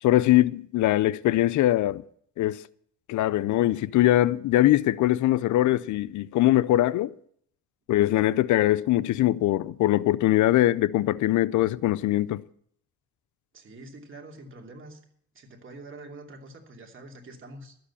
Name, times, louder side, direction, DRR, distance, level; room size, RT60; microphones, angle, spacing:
voice 1, 0.0-2.0 2.4-2.6 3.1-7.1 7.9-12.4, left 14 dB, 75° left, 0.5 m, -22 dB
voice 2, 13.5-15.0 15.3-17.8, right 2 dB, 40° right, 2.9 m, -45 dB
12.5 x 7.9 x 8.4 m
cardioid pair, 90°, 30 cm